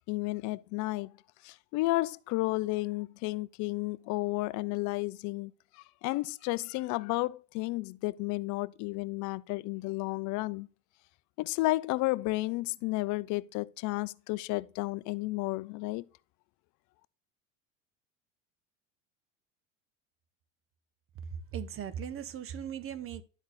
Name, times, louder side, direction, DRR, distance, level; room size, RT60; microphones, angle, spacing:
voice 1, 0.1-1.1 1.4-5.5 6.0-10.7 11.4-16.0, left 21 dB, 50° left, 0.5 m, -32 dB
voice 2, 21.5-23.2, right 8 dB, 35° right, 0.7 m, -38 dB
11.0 x 4.0 x 3.9 m
supercardioid pair, 100°, 38 cm